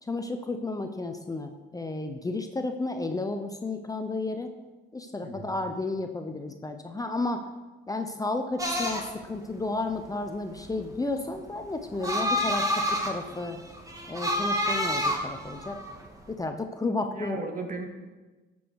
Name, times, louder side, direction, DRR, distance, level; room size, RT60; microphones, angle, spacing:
voice 1, 0.0-4.5 4.9-7.5 7.9-13.6 14.1-15.8 16.3-17.5, left 2 dB, 15° left, 6 dB, 0.7 m, -32 dB
voice 2, 5.2-5.6 16.9-17.8, right 3 dB, 40° right, 3 dB, 1.9 m, -37 dB
sound 1, 8.6-16.3, equal, 15° right, 1.6 m, -29 dB
12.5 x 7.1 x 4.7 m, 1.2 s
cardioid pair, 90°, 20 cm